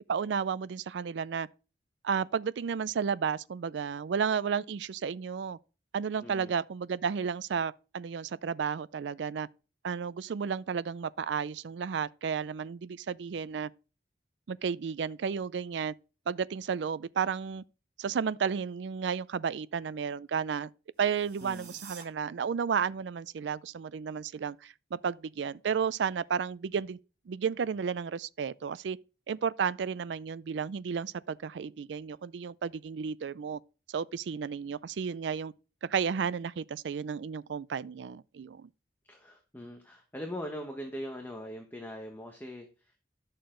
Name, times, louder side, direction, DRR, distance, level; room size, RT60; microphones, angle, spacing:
voice 1, 0.1-1.5 2.0-5.6 5.9-9.5 9.8-13.7 14.5-15.9 16.3-17.6 18.0-20.7 21.0-27.0 27.3-29.0 29.3-33.6 33.9-35.5 35.8-38.7, right 6 dB, 85° right, 0.4 m, -32 dB
voice 2, 6.2-6.5 21.4-21.8 39.1-42.9, equal, 10° left, 1.1 m, -41 dB
sound 1, 21.0-22.0, right 6 dB, 45° right, 2.1 m, -49 dB
11.0 x 6.6 x 3.8 m
head